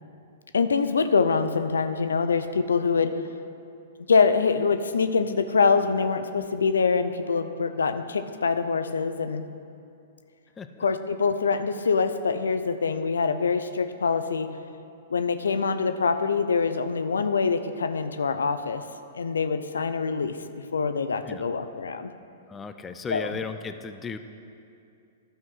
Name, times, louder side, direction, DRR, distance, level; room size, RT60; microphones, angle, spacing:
voice 1, 0.5-3.1 4.1-9.5 10.8-14.5 15.1-18.8 19.1-20.4 20.7-22.1 23.1-23.3, left 5 dB, 90° left, 10 dB, 0.5 m, -24 dB
voice 2, 22.5-24.2, left 5 dB, 15° left, 9 dB, 0.5 m, -35 dB
11.0 x 5.7 x 6.3 m, 2.5 s
hypercardioid pair, 125°, 0 cm